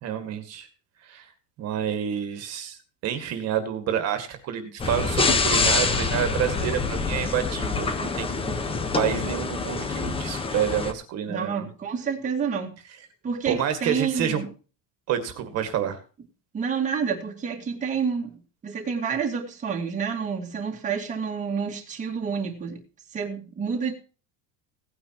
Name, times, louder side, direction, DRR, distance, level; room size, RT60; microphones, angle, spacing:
voice 1, 0.0-0.7 1.0-1.3 1.6-2.8 3.0-8.5 8.9-11.7 13.5-14.4 15.1-16.0, right 9 dB, 45° right, 8 dB, 2.1 m, -28 dB
sound 1, 4.8-10.9, left 4 dB, 15° left, 1.2 m, -26 dB
voice 2, 11.3-12.7 13.2-14.5 16.5-22.8 23.1-23.9, right 6 dB, 20° right, 1 dB, 2.2 m, -29 dB
17.5 x 9.6 x 3.0 m, 0.35 s
cardioid pair, 170°, 36 cm